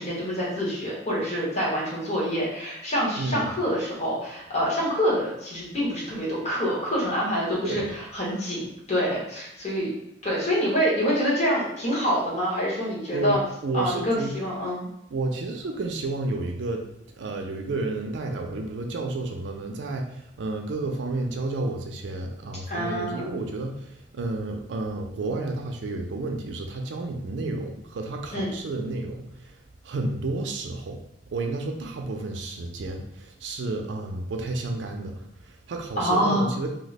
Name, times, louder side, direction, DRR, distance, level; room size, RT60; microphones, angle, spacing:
voice 1, 0.0-7.8 8.1-9.9 10.2-13.4 13.7-14.9 22.7-23.3 28.3-28.5 36.0-36.5, equal, 40° left, -6 dB, 1.2 m, -26 dB
voice 2, 3.2-3.5 7.6-7.8 13.1-14.3 15.1-16.8 17.2-29.6 29.8-31.0 31.3-36.7, right 2 dB, 75° right, 3 dB, 0.4 m, -31 dB
2.8 x 2.1 x 4.0 m, 0.78 s
head